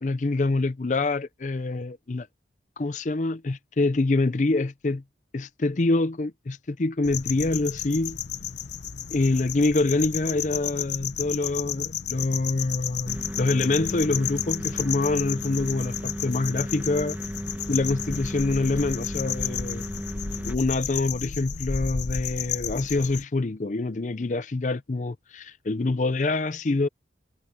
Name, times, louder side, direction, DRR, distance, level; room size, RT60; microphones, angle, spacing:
voice 1, 0.0-2.3 2.8-5.0 5.3-8.2 9.1-17.2 17.7-19.8 20.5-26.9, left 2 dB, 40° left, 0.5 m, -26 dB
sound 1, 7.0-23.2, left 8 dB, 75° left, 0.9 m, -33 dB
sound 2, 13.1-20.6, equal, 10° right, 1.2 m, -35 dB
head